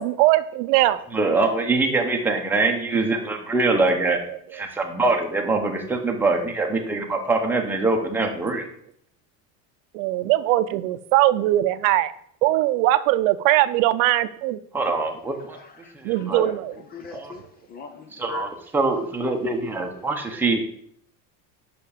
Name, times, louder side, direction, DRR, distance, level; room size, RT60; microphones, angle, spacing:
voice 1, 0.0-1.0 9.9-12.1 12.4-14.6 16.0-16.8, right 15 dB, 80° right, 13 dB, 0.6 m, -20 dB
voice 2, 1.1-4.2 4.5-8.7 14.7-15.6 15.9-16.5 17.1-17.3 18.2-20.6, right 3 dB, 5° right, 1 dB, 0.8 m, -23 dB
voice 3, 15.4-18.5, left 6 dB, 25° left, 8 dB, 0.4 m, -42 dB
5.9 x 5.6 x 6.5 m, 0.66 s
cardioid pair, 170°, 40 cm